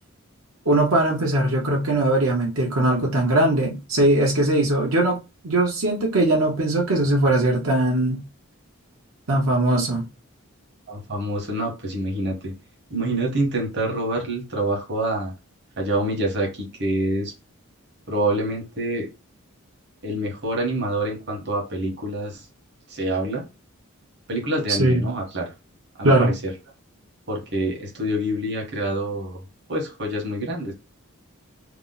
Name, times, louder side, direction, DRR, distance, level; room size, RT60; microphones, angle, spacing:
voice 1, 0.7-5.2 5.4-8.2 9.3-10.0 24.7-25.0 26.0-26.3, right 1 dB, 80° right, 0.7 m, -20 dB
voice 2, 10.9-12.5 12.9-15.3 15.8-17.3 18.1-19.1 20.0-22.5 22.9-23.4 24.3-25.5 26.0-26.5 27.3-29.4 29.7-30.7, right 1 dB, 55° right, 1.0 m, -26 dB
2.8 x 2.0 x 3.8 m
head